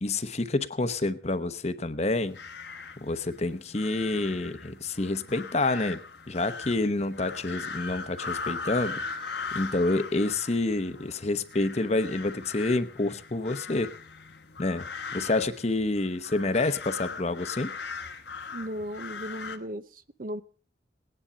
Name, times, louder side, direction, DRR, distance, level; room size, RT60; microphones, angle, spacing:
voice 1, 0.0-2.4 3.0-6.0 6.3-13.9 14.6-14.8 15.1-17.7, left 2 dB, 35° left, 10 dB, 0.9 m, -28 dB
sound 1, 2.1-19.6, left 5 dB, 70° left, 1.3 m, -40 dB
Wind instrument woodwind instrument, 7.5-10.9, right 2 dB, 20° right, 2.0 m, -45 dB
voice 2, 18.5-19.8 20.2-20.4, equal, 50° right, 13 dB, 0.7 m, -35 dB
18.5 x 10.0 x 5.0 m, 0.39 s
head